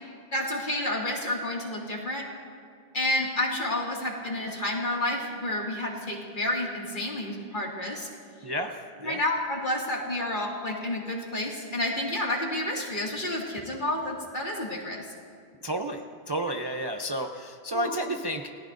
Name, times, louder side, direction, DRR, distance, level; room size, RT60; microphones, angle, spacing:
voice 1, 0.3-2.3 2.9-8.1 9.0-15.0 17.7-17.9, left 1 dB, 50° left, -2 dB, 2.4 m, -30 dB
voice 2, 15.6-16.0 16.3-18.5, right 1 dB, 30° right, 3 dB, 0.6 m, -31 dB
29.0 x 18.0 x 2.6 m, 2.2 s
omnidirectional pair, 1.1 m